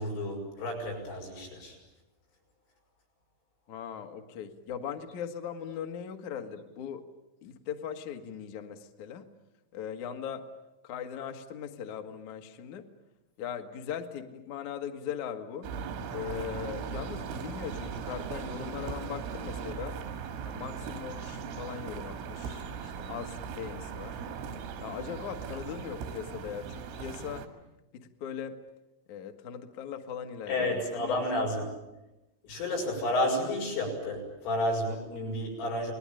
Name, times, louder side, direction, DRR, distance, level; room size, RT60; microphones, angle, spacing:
voice 1, 0.0-1.8 30.5-31.7 32.4-35.9, left 1 dB, 90° left, 0 dB, 8.9 m, -31 dB
voice 2, 3.7-7.0 7.4-9.3 9.7-10.5 10.8-12.9 13.4-15.7 16.1-20.0 20.4-24.2 24.8-27.5 27.9-28.6 29.1-31.5, left 8 dB, 60° left, 5 dB, 2.0 m, -39 dB
sound 1, 15.6-27.5, right 6 dB, 90° right, 4.5 m, -39 dB
29.5 x 20.0 x 9.0 m, 1.0 s
omnidirectional pair, 5.6 m